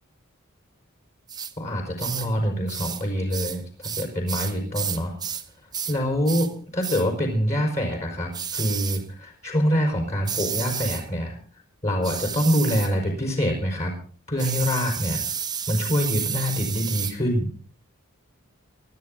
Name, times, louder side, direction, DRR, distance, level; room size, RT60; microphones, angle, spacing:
sound 1, 1.3-1.5 2.0-2.3 2.7-3.0 3.3-5.5 5.7-6.0 6.2-6.5 6.8-7.1 8.3-9.0 10.2-11.0 12.0-12.9 14.4-17.2, right 7 dB, 20° right, 1.0 m, -31 dB
voice 1, 1.6-5.2 5.9-11.3 11.8-13.9 14.3-15.2 15.7-17.5, equal, 30° left, 2 dB, 4.9 m, -25 dB
24.0 x 13.0 x 3.8 m, 0.41 s
head